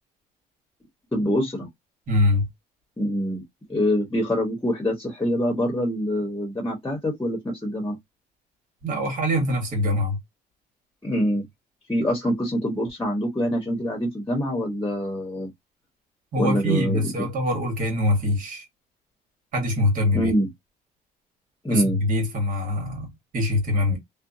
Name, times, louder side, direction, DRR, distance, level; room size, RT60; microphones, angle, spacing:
voice 1, 1.1-1.7 3.0-3.4 3.7-8.0 11.0-11.4 11.9-15.5 16.4-17.1 20.1-20.5 21.6-22.0, equal, 15° left, 1.0 m, -25 dB
voice 2, 2.1-2.5 8.8-10.2 16.3-18.6 19.5-20.3 21.7-24.0, left 1 dB, 50° right, 1.4 m, -24 dB
2.6 x 2.1 x 2.6 m
cardioid pair, 110°, 17 cm